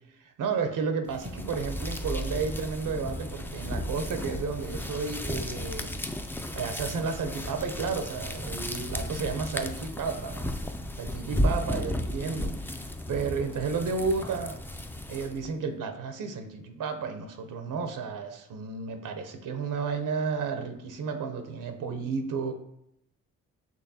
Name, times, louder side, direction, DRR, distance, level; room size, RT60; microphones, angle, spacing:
voice 1, 0.4-5.9 6.5-10.5 11.0-14.6 15.1-22.5, right 5 dB, 65° right, 7 dB, 0.6 m, -32 dB
sound 1, 1.1-15.5, left 1 dB, 5° left, 0.4 m, -34 dB
6.2 x 3.1 x 2.7 m, 0.79 s
cardioid pair, 70°, 34 cm